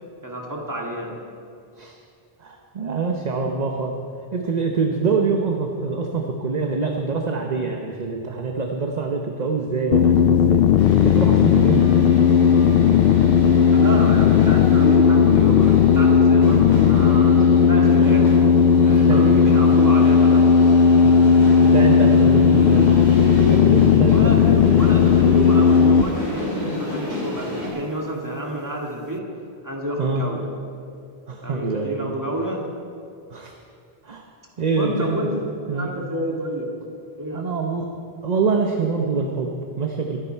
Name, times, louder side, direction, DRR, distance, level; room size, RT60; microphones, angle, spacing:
voice 1, 0.2-1.1 13.7-18.2 18.8-20.4 24.1-29.3 29.6-30.4 31.4-32.6 34.7-36.7 37.2-37.6, equal, 15° right, -1 dB, 2.1 m, -29 dB
voice 2, 2.4-3.9 4.3-10.6 11.0-11.9 17.4-17.5 18.9-19.5 21.0-22.9 23.5-24.6 30.0-30.2 31.3-32.2 33.3-33.5 34.0-34.2 34.6-35.3 35.7-35.9 37.3-37.9 38.2-40.2, right 4 dB, 45° right, 2 dB, 0.9 m, -25 dB
sound 1, 9.9-26.0, left 7 dB, 70° left, 0.8 m, -15 dB
sound 2, 10.8-27.7, left 1 dB, 85° left, 4.1 m, -30 dB
23.0 x 9.6 x 4.6 m, 2.5 s
omnidirectional pair, 1.1 m